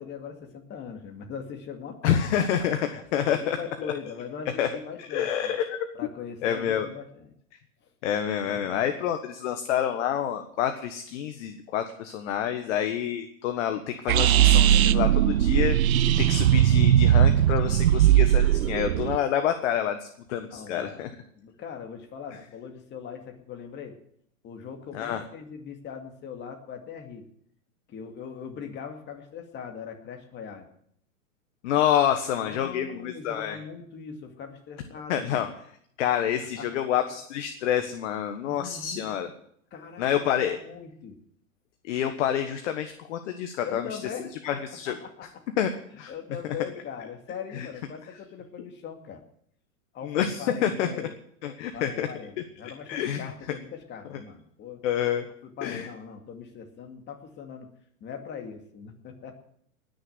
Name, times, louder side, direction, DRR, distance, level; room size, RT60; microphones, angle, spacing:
voice 1, 0.0-2.5 3.2-5.6 5.9-7.3 8.4-8.8 14.7-14.9 20.5-21.1 21.4-24.0 24.4-27.3 27.9-30.7 32.3-35.5 36.6-36.8 38.4-39.1 39.7-41.2 43.6-44.3 44.9-45.4 46.1-49.2 49.9-51.1 51.7-54.8 55.4-57.7 58.0-59.3, left 7 dB, 25° left, 4 dB, 2.3 m, -40 dB
voice 2, 2.0-3.6 3.8-3.9 4.6-4.7 5.1-5.8 6.4-6.9 8.0-15.8 16.2-21.1 24.9-25.2 31.6-33.6 35.1-35.5 36.0-39.3 40.0-40.6 41.9-43.9 44.4-44.9 45.6-45.7 46.0-46.1 47.5-47.7 50.0-50.9 51.4-52.1 52.9-53.2 54.8-55.3 55.6-55.9, left 9 dB, 60° left, 7 dB, 1.5 m, -27 dB
sound 1, 14.1-19.2, right 11 dB, 85° right, 0.9 m, -19 dB
20.0 x 6.8 x 8.1 m, 0.68 s
hypercardioid pair, 135°, 41 cm